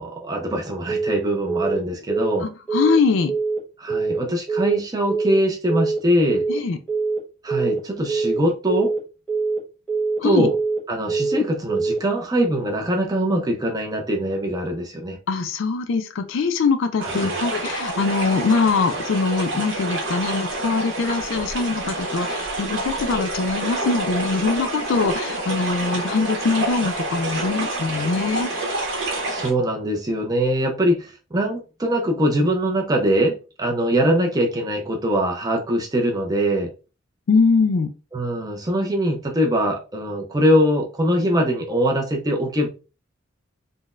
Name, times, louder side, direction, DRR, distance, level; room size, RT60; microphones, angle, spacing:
voice 1, 0.0-2.5 3.8-6.4 7.4-8.9 10.2-10.5 10.9-15.2 17.0-17.4 29.3-36.7 38.1-42.7, equal, 20° right, 2 dB, 0.5 m, -22 dB
Telephone, 0.9-1.2 1.5-1.8 2.1-2.4 2.7-3.0 3.3-3.6 3.9-4.2 4.5-4.8 5.1-5.4 5.7-6.0 6.3-6.6 6.9-7.2 7.5-7.8 8.1-8.4 8.7-9.0 9.3-9.6 9.9-10.2 10.5-10.8 11.1-11.4 11.7-12.0, right 4 dB, 5° left, 0.9 m, -23 dB
voice 2, 2.4-3.3 6.5-6.8 10.2-10.5 15.3-28.5 37.3-37.9, left 4 dB, 70° left, 8 dB, 0.4 m, -22 dB
sound 1, 17.0-29.5, right 2 dB, 65° right, 1.1 m, -28 dB
3.8 x 2.1 x 2.4 m, 0.33 s
head